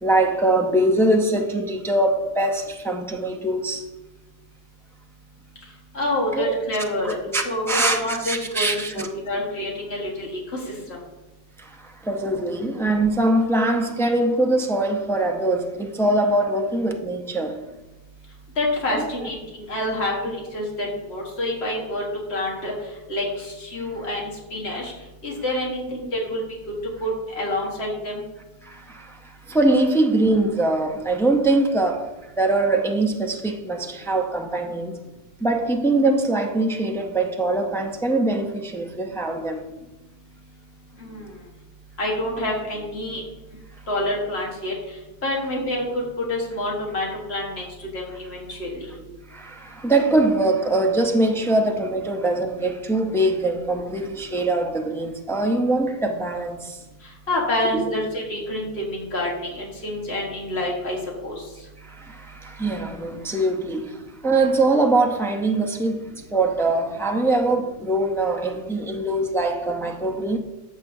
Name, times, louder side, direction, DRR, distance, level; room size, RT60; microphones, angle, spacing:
voice 1, 0.0-3.9 6.3-6.5 7.0-9.1 11.6-17.6 18.9-19.3 25.8-25.9 28.6-29.2 29.5-32.1 32.4-35.0 35.4-39.6 49.3-56.8 57.7-57.9 61.8-64.0 64.2-70.4, right 2 dB, 5° left, 0.5 m, -22 dB
voice 2, 5.9-7.2 7.5-10.4 18.6-19.4 19.7-22.0 22.3-22.7 23.1-24.9 25.2-26.4 27.0-28.2 41.0-41.3 42.0-43.2 43.9-44.7 45.2-45.9 46.3-47.6 47.9-48.7 57.3-61.0 61.2-61.4, left 1 dB, 90° left, 1.7 m, -27 dB
14.0 x 6.2 x 2.7 m
omnidirectional pair, 1.0 m